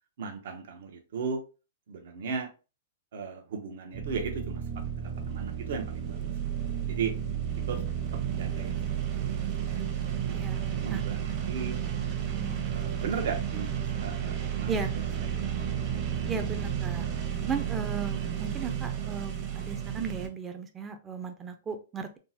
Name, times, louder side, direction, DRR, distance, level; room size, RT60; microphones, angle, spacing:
voice 1, 0.2-1.4 1.9-2.5 3.1-7.2 7.7-7.8 8.1-8.8 9.7-9.8 10.7-11.2 11.5-11.8 12.7-15.8, right 5 dB, 65° right, 0.7 m, -37 dB
sound 1, 3.9-20.3, right 9 dB, 35° right, 0.8 m, -32 dB
voice 2, 10.3-10.6 10.9-11.0 12.3-12.6 14.7-15.2 16.3-17.0 17.4-22.2, right 5 dB, 15° right, 0.4 m, -36 dB
3.5 x 2.0 x 2.7 m
hypercardioid pair, 145°, 0 cm